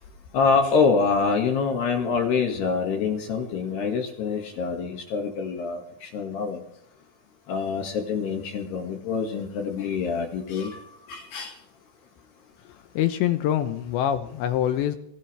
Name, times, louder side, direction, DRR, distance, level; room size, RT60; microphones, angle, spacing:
voice 1, 0.3-6.6 7.5-10.8 11.1-11.5, left 5 dB, 60° left, 3 dB, 3.5 m, -25 dB
voice 2, 13.0-15.0, left 11 dB, 80° left, 8 dB, 2.7 m, -24 dB
24.5 x 16.0 x 3.4 m, 0.73 s
omnidirectional pair, 5.9 m